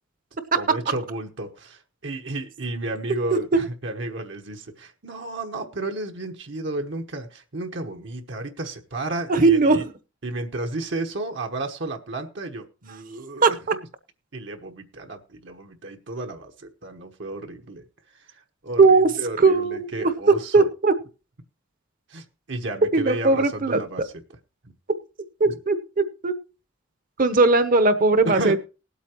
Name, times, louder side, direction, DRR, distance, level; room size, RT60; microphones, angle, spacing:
voice 1, 0.6-9.8 10.2-13.6 14.3-17.8 18.6-20.7 22.1-24.1 28.2-28.6, right 2 dB, 65° right, 4 dB, 1.2 m, -32 dB
voice 2, 9.3-9.9 13.4-13.5 18.8-19.1 19.4-20.1 20.5-20.9 22.9-23.8 25.4-26.3 27.2-28.6, right 3 dB, 45° right, 11 dB, 0.9 m, -18 dB
19.5 x 8.3 x 3.0 m, 0.32 s
head